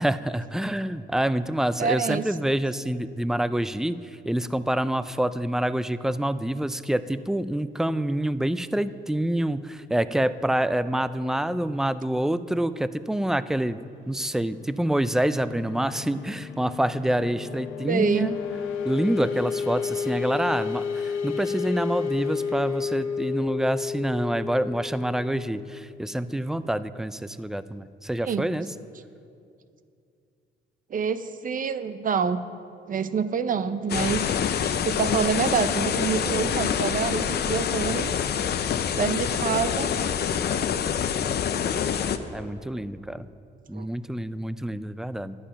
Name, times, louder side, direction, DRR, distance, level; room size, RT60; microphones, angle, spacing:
voice 1, 0.0-13.8 14.1-18.3 18.8-28.7 42.3-43.3 43.7-45.4, right 1 dB, ahead, 14 dB, 0.3 m, -27 dB
voice 2, 1.8-2.2 17.9-18.3 28.2-28.5 30.9-32.4 32.9-34.4 34.8-38.2 39.0-39.9 43.7-43.9, right 6 dB, 45° right, 12 dB, 0.6 m, -26 dB
sound 1, 13.8-26.4, left 6 dB, 85° left, 0.8 m, -32 dB
sound 2, 33.9-42.2, left 8 dB, 55° left, 0.6 m, -26 dB
11.5 x 8.6 x 5.7 m, 2.5 s
cardioid pair, 90°, 20 cm